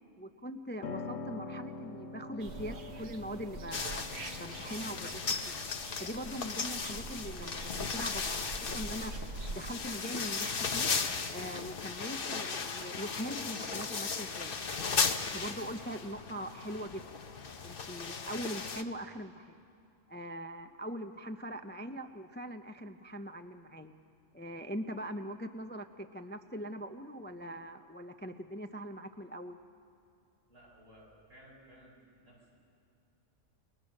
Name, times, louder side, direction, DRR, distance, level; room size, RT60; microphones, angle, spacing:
voice 1, 0.2-4.0 4.4-5.6 6.0-8.5 8.7-9.2 9.5-10.9 11.3-17.2 17.6-19.6 20.1-23.9 24.3-29.6, equal, 15° left, 7 dB, 0.5 m, -42 dB
Piano, 0.8-10.8, left 3 dB, 90° left, 1.3 m, -47 dB
sound 1, 2.4-9.7, right 3 dB, 60° right, 1.4 m, -45 dB
sound 2, 3.7-18.8, left 5 dB, 50° left, 1.1 m, -36 dB
voice 2, 30.5-32.5, equal, 80° right, -4 dB, 7.7 m, -57 dB
29.0 x 22.0 x 6.5 m, 2.6 s
omnidirectional pair, 1.3 m